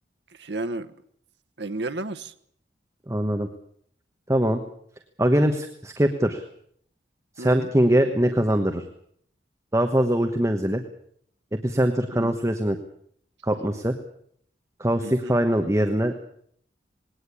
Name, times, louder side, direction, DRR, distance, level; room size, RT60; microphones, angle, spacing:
voice 1, 0.3-0.9 1.6-2.3 7.4-7.7 12.1-12.4 15.0-15.4, right 2 dB, 70° right, 9 dB, 1.2 m, -33 dB
voice 2, 3.1-3.5 4.3-4.6 5.2-6.4 7.4-8.8 9.7-10.8 11.5-12.8 13.4-14.0 14.8-16.3, right 1 dB, 15° right, 6 dB, 1.2 m, -22 dB
20.0 x 18.0 x 8.5 m, 0.67 s
head